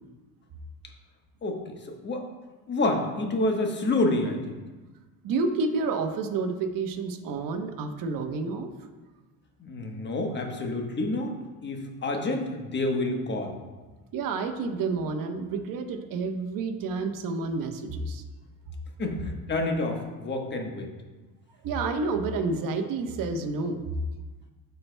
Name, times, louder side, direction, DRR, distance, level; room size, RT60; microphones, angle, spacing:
voice 1, 1.4-2.3 2.7-4.6 9.6-11.4 11.6-13.6 19.0-20.9, left 2 dB, 25° left, 3 dB, 1.2 m, -28 dB
voice 2, 5.2-8.7 14.1-18.2 21.6-23.8, right 4 dB, 55° right, 6 dB, 1.0 m, -29 dB
12.0 x 4.5 x 2.2 m, 1.2 s
supercardioid pair, 105°, 40 cm